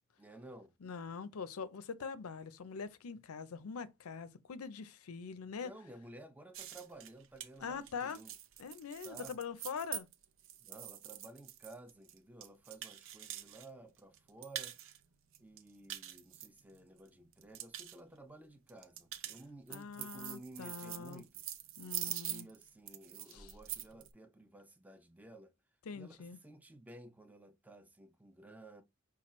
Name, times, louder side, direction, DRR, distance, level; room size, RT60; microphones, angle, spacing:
voice 1, 0.2-0.7 5.6-8.3 9.0-9.4 10.6-14.8 15.4-21.4 22.0-25.5 25.9-28.8, right 2 dB, 5° right, 0.4 m, -54 dB
voice 2, 0.8-5.7 7.6-8.2 8.6-10.1 19.7-21.2 21.8-22.5 23.3-23.5 25.9-26.4, left 5 dB, 90° left, 0.5 m, -43 dB
sound 1, 6.5-13.7 14.0-15.0 15.3-17.0 17.3-18.0 18.7-24.1, right 12 dB, 65° right, 0.6 m, -45 dB
5.9 x 2.3 x 3.0 m
head